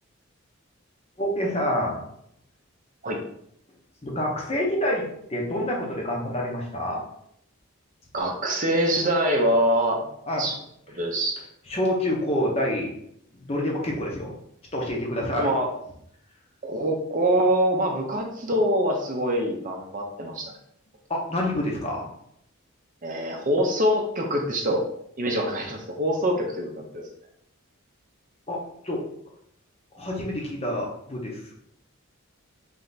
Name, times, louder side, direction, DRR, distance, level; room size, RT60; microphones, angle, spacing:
voice 1, 1.2-2.0 4.0-5.0 5.3-7.0 10.3-10.4 11.7-12.9 13.4-14.3 14.7-15.5 21.1-22.1 28.5-28.6 28.8-29.0 29.9-31.4, left 1 dB, 25° left, -1 dB, 0.8 m, -27 dB
voice 2, 8.1-10.0 10.4-10.6 10.9-11.4 15.4-15.7 16.6-20.5 23.0-24.8 25.2-27.0, equal, 35° right, 1 dB, 0.6 m, -24 dB
3.4 x 3.3 x 4.0 m, 0.71 s
head